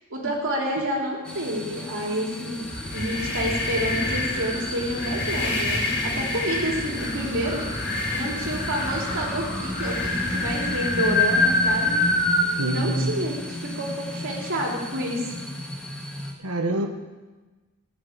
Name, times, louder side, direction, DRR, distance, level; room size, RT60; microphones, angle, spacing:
voice 1, 0.1-2.7 2.9-7.6 8.1-12.0 12.6-15.3, equal, 60° right, -1 dB, 3.4 m, -29 dB
sound 1, 1.2-16.3, left 1 dB, 5° left, 1.7 m, -34 dB
sound 2, 2.7-12.4, left 2 dB, 55° left, 4.1 m, -26 dB
voice 2, 12.6-13.1 16.4-16.9, right 2 dB, 80° right, 5 dB, 1.6 m, -25 dB
16.0 x 6.9 x 8.7 m, 1.2 s
head